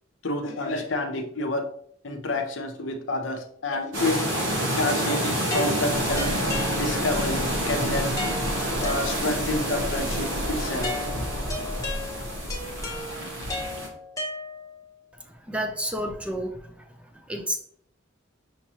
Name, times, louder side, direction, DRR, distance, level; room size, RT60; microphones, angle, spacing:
voice 1, 0.2-1.7 2.0-4.3 4.8-6.3 6.7-8.1 8.8-10.9, left 2 dB, 80° left, 4 dB, 0.8 m, -29 dB
sound 1, 3.9-13.9, equal, 85° right, 1.2 m, -28 dB
sound 2, 5.5-7.3 8.2-9.6 10.8-14.9, left 2 dB, 20° left, 0.9 m, -35 dB
sound 3, 5.9-13.0, equal, 35° right, 0.9 m, -36 dB
voice 2, 15.5-16.7 17.3-17.6, right 1 dB, 5° right, 4 dB, 0.5 m, -30 dB
5.8 x 3.0 x 2.8 m, 0.62 s
head